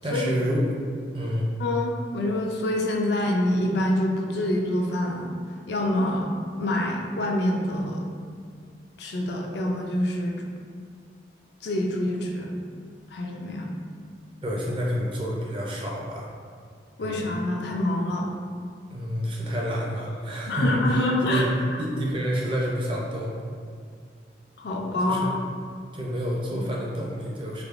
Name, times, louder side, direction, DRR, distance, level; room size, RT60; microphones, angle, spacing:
voice 1, 0.0-0.6 1.1-1.5 14.4-16.3 17.0-17.4 18.9-21.5 21.8-23.3 25.1-25.3 25.9-27.6, equal, 25° right, -3 dB, 0.4 m, -28 dB
voice 2, 1.6-5.3 5.7-6.3 6.6-8.1 9.0-10.4 11.6-12.5 13.1-13.8 17.0-18.3 20.5-21.8 24.6-25.4 26.5-26.6, left 1 dB, 65° left, 0 dB, 0.4 m, -26 dB
3.3 x 2.9 x 2.5 m, 2.1 s
head